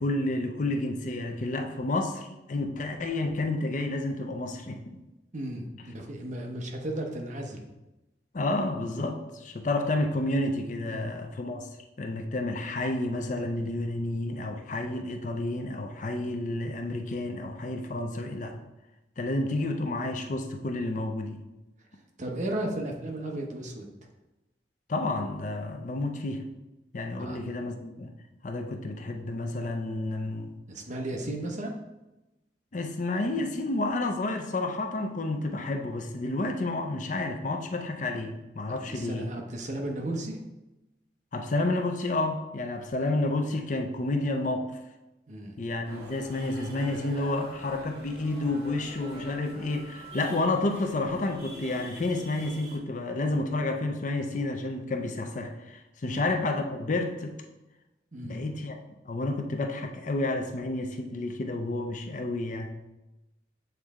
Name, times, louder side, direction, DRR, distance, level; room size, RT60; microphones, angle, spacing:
voice 1, 0.0-5.0 8.3-11.7 12.0-18.6 19.2-21.4 24.9-26.4 26.9-28.1 28.4-30.6 32.7-39.3 41.3-44.8 45.6-57.4 58.2-58.8 59.0-62.9, left 2 dB, 45° left, 5 dB, 0.5 m, -30 dB
voice 2, 5.3-7.7 10.9-11.1 22.2-23.9 27.2-27.4 30.7-31.7 38.7-40.4 45.3-45.6 56.0-56.2 58.1-58.4, right 1 dB, 45° right, 1 dB, 0.9 m, -35 dB
sound 1, 45.8-52.8, equal, 70° right, 1.8 m, -46 dB
7.9 x 3.3 x 3.6 m, 0.99 s
head